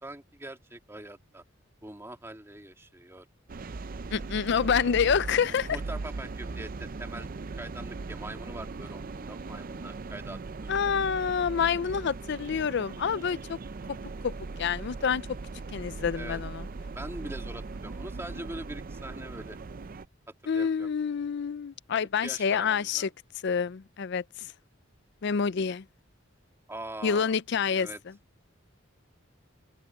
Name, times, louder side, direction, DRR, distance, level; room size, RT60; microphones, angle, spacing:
voice 1, 0.0-1.4 1.8-3.3 5.7-7.3 7.6-10.7 16.1-16.4 16.9-19.6 20.4-20.9 22.2-23.1 26.7-27.3 27.7-28.0, right 1 dB, 15° right, 2.5 m, -42 dB
sound 1, 3.5-20.0, right 3 dB, 45° right, 0.5 m, -39 dB
voice 2, 4.1-5.8 10.7-13.6 13.9-14.0 14.2-15.3 15.7-16.7 20.5-23.1 23.4-24.5 25.2-25.8 27.0-27.9, left 6 dB, 60° left, 0.4 m, -27 dB
open air
head